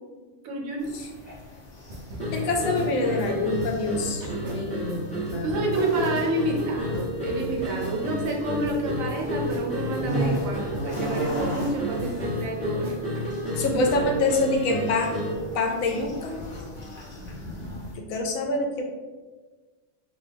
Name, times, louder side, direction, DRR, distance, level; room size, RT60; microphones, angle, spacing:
voice 1, 0.4-0.9 5.4-12.9, right 2 dB, 80° right, 0 dB, 1.1 m, -29 dB
sound 1, 0.8-17.9, equal, 40° left, 0.7 m, -38 dB
sound 2, 1.9-5.0 5.3-5.8 6.1-6.3 6.6-8.4 8.6-9.2 9.5-12.5 12.8-13.0, right 1 dB, 45° right, 0.6 m, -39 dB
sound 3, 2.2-15.5, equal, 5° left, 0.8 m, -31 dB
voice 2, 2.3-5.7 13.6-15.1 15.5-16.3 18.0-18.9, left 2 dB, 85° left, 2 dB, 1.0 m, -26 dB
3.0 x 2.6 x 3.3 m, 1.3 s
omnidirectional pair, 1.4 m